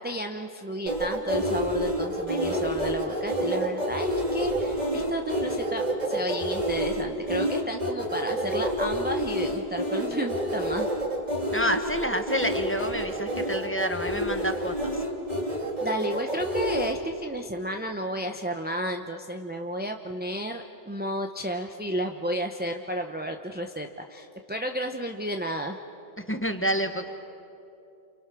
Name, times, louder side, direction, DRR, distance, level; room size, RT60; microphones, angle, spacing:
voice 1, 0.0-10.9 15.8-25.8, right 1 dB, 10° right, 4 dB, 0.7 m, -32 dB
sound 1, 0.9-16.9, equal, 35° right, 2.8 m, -28 dB
voice 2, 11.5-14.9 26.3-27.1, equal, 10° left, 6 dB, 1.2 m, -28 dB
29.0 x 29.0 x 6.2 m, 2.8 s
omnidirectional pair, 1.3 m